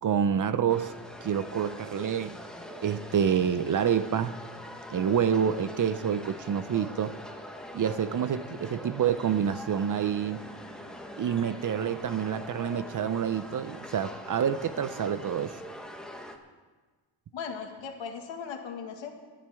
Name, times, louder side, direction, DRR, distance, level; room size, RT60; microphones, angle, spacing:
voice 1, 0.0-0.9 1.2-2.4 2.8-4.4 4.9-7.2 7.7-10.4 11.2-15.6, right 8 dB, 45° right, 13 dB, 0.6 m, -27 dB
sound 1, 0.7-16.4, left 1 dB, ahead, 1.1 m, -43 dB
voice 2, 17.3-19.1, left 6 dB, 85° left, 3 dB, 1.8 m, -38 dB
25.5 x 11.0 x 3.5 m, 1.4 s
cardioid pair, 120°, 45 cm